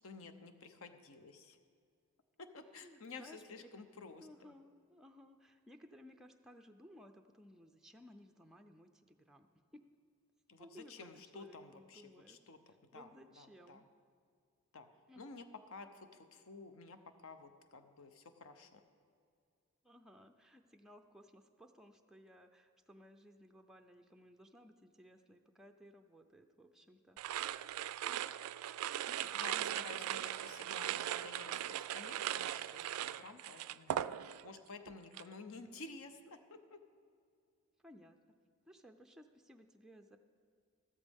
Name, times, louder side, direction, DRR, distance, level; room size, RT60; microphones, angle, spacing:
voice 1, 0.0-1.6 2.4-4.3 10.5-13.1 13.4-13.8 14.7-14.9 15.2-18.8 29.1-33.9 34.4-36.8, left 4 dB, 65° left, 8 dB, 0.8 m, -52 dB
voice 2, 2.6-3.7 4.2-9.5 9.7-9.8 10.6-12.4 12.9-13.9 15.1-15.2 19.8-27.2 28.9-29.2 29.5-30.1 37.8-38.2 38.6-40.2, equal, ahead, 4 dB, 0.4 m, -59 dB
sound 1, 27.2-34.6 34.9-35.3, right 11 dB, 75° right, 0.3 m, -39 dB
14.0 x 13.5 x 3.5 m, 2.3 s
head